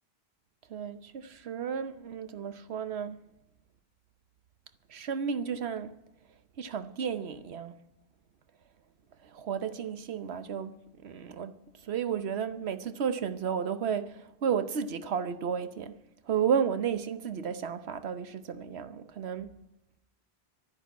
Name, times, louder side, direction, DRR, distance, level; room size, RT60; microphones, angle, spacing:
voice 1, 0.7-3.2 4.9-5.9 6.6-7.7 9.3-10.7 11.0-11.5 11.9-15.9 16.3-19.5, right 7 dB, 80° right, 1.1 m, -32 dB
12.5 x 11.0 x 9.3 m
omnidirectional pair, 1.1 m